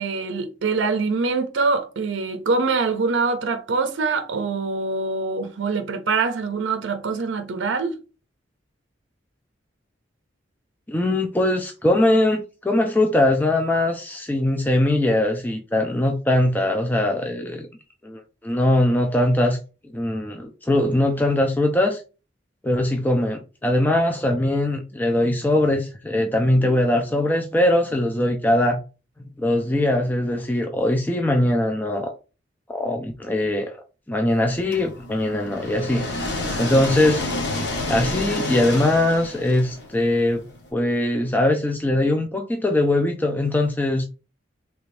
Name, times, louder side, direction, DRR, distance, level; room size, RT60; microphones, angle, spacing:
voice 1, 0.0-8.0, right 4 dB, 70° right, 0.5 m, -24 dB
voice 2, 10.9-17.7 18.0-19.6 19.9-22.0 22.6-28.8 29.4-32.1 32.7-33.7 34.1-36.1 36.6-37.2 37.9-40.5 40.7-44.0, left 1 dB, 10° left, 0.3 m, -21 dB
sound 1, 34.7-40.6, left 2 dB, 60° left, 1.0 m, -29 dB
3.3 x 2.6 x 3.2 m
head